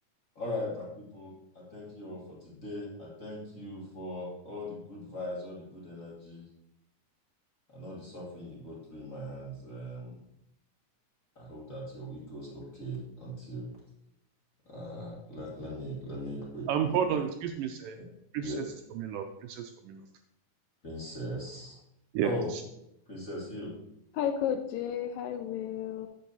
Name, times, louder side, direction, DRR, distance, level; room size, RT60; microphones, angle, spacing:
voice 1, 0.3-6.4 7.7-10.2 11.3-13.7 14.6-17.0 17.9-18.0 18.4-18.6 20.8-21.8 22.2-22.5 23.1-23.7, equal, 35° left, -5 dB, 1.4 m, -39 dB
voice 2, 16.7-18.0 18.3-18.5 19.0-20.0 22.1-22.3, right 8 dB, 80° right, 6 dB, 2.0 m, -31 dB
voice 3, 24.1-26.1, left 9 dB, 80° left, 7 dB, 2.1 m, -32 dB
8.3 x 6.6 x 4.0 m, 0.82 s
omnidirectional pair, 4.2 m